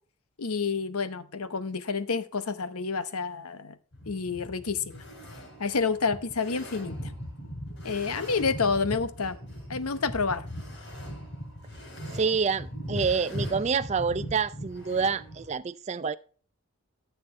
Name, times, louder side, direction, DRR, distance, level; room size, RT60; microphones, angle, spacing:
voice 1, 0.4-3.7 4.1-5.0 5.6-7.0 7.8-9.4 9.7-10.4, left 4 dB, 90° left, 0.9 m, -29 dB
sound 1, 3.9-15.5, equal, 55° left, 5.2 m, -39 dB
voice 2, 12.1-16.2, right 5 dB, 30° right, 0.4 m, -27 dB
14.5 x 6.8 x 3.2 m
head